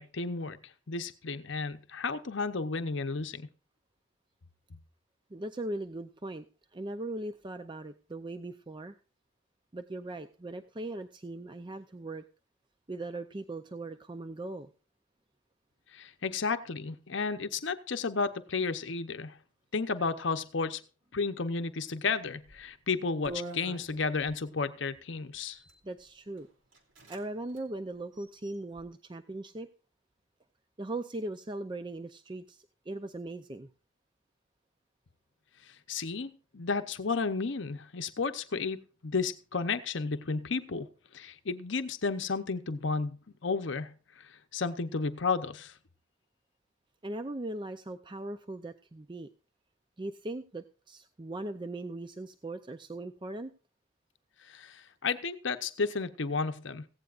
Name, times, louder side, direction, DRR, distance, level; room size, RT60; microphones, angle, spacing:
voice 1, 0.0-3.5 15.9-19.4 19.7-20.8 21.1-25.6 35.6-40.9 41.1-45.8 54.4-56.9, left 4 dB, 65° left, 0.8 m, -33 dB
voice 2, 5.3-8.9 9.7-12.2 12.9-14.7 25.8-26.5 27.1-29.7 30.8-33.7 47.0-49.3 50.0-53.5, right 2 dB, 25° right, 0.5 m, -39 dB
sound 1, 22.4-22.7 23.2-24.4 25.3-25.8 26.4-26.5 26.7-27.2 27.5-27.6 28.1-28.8, right 2 dB, 70° right, 2.9 m, -44 dB
17.0 x 15.5 x 2.5 m
head